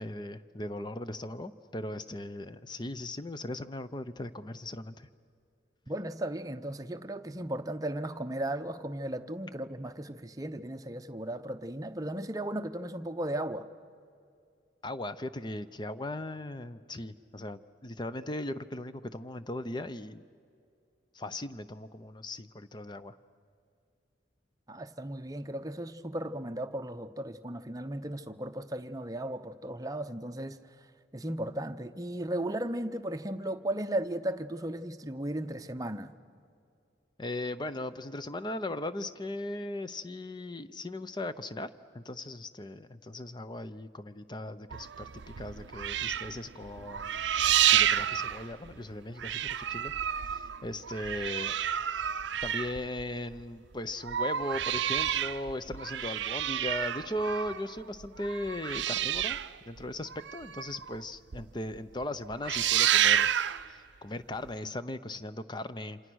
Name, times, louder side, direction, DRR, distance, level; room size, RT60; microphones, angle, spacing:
voice 1, 0.0-5.1 14.8-20.2 21.1-23.2 37.2-45.1 45.4-47.2 47.6-51.6 52.4-59.4 59.7-63.3 63.7-66.0, left 1 dB, 25° left, 12 dB, 0.7 m, -38 dB
voice 2, 5.9-13.7 24.7-30.6 31.1-36.1, right 1 dB, 20° right, 8 dB, 0.7 m, -36 dB
sound 1, 44.7-48.9 49.2-53.4 53.9-61.0 61.3-61.4 61.8-62.0 62.3-63.7 64.5-64.6, right 10 dB, 75° right, 0.5 m, -30 dB
27.5 x 26.5 x 6.3 m, 2.5 s
head